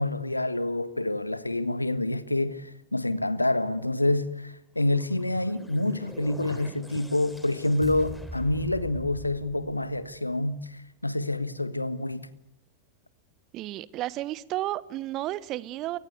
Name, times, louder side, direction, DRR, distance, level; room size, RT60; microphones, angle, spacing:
voice 1, 0.0-12.3, left 2 dB, 85° left, 1.5 m, -27 dB
sound 1, 5.0-10.3, equal, ahead, 3.4 m, -43 dB
voice 2, 13.5-16.0, right 15 dB, 35° right, 1.1 m, -32 dB
29.5 x 23.5 x 8.0 m
figure-of-eight pair, 90°, 0 cm